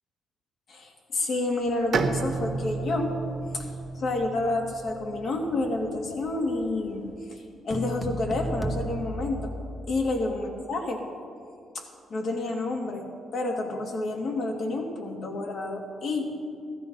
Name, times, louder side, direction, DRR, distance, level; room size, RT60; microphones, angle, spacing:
voice 1, 0.7-3.2 3.5-3.7 4.0-7.0 7.3-9.5 9.9-11.0 11.7-11.8 12.1-13.1 13.3-16.2, left 2 dB, 60° left, 1 dB, 2.4 m, -29 dB
sound 1, 1.6-7.1, left 1 dB, 85° left, 1.8 m, -49 dB
Bowed string instrument, 1.9-5.5, right 4 dB, 60° right, 1.2 m, -32 dB
sound 2, 7.7-10.2, right 1 dB, 10° left, 1.3 m, -33 dB
15.5 x 13.0 x 5.5 m, 2.4 s
cardioid pair, 90°, 0 cm